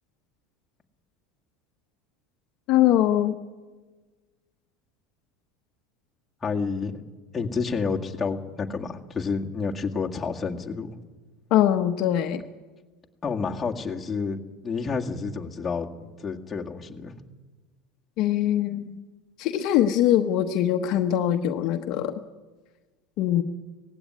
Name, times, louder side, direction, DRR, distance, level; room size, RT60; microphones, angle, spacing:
voice 1, 2.7-3.4 11.5-12.4 18.2-19.0 19.4-22.1 23.2-23.4, left 11 dB, 55° left, 6 dB, 1.1 m, -22 dB
voice 2, 6.4-6.9 7.3-11.0 13.2-17.1, left 5 dB, 15° left, -1 dB, 2.0 m, -29 dB
18.5 x 16.0 x 9.7 m, 1.3 s
supercardioid pair, 125°, 0 cm